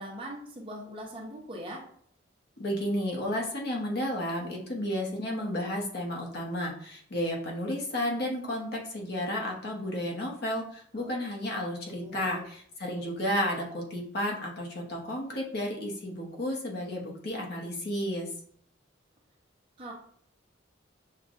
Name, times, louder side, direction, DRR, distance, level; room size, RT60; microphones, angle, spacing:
voice 1, 0.0-1.8 11.0-11.1 11.9-12.4 19.8-19.9, right 1 dB, 25° right, -2 dB, 0.9 m, -41 dB
voice 2, 2.6-18.3, left 1 dB, 55° left, -1 dB, 1.0 m, -32 dB
6.6 x 2.4 x 2.5 m, 0.62 s
head